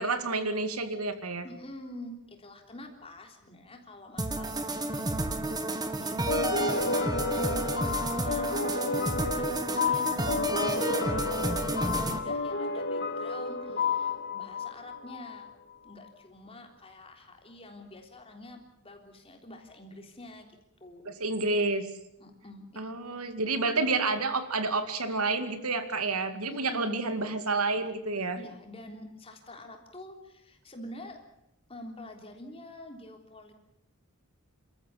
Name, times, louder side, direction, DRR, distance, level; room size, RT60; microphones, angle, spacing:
voice 1, 0.0-1.4 21.0-21.8 22.8-28.4, right 3 dB, 85° right, 9 dB, 2.4 m, -29 dB
voice 2, 1.4-5.1 5.9-6.2 6.6-15.5 15.8-20.5 20.8-21.2 22.2-22.8 23.1-23.3 26.5-27.0 28.4-31.2 31.7-33.5, left 1 dB, 25° left, 3 dB, 3.6 m, -47 dB
sound 1, 4.2-12.2, right 1 dB, 20° right, 1.8 m, -31 dB
sound 2, 6.3-15.5, left 4 dB, 50° left, 2.0 m, -31 dB
28.5 x 14.0 x 8.5 m, 0.83 s
head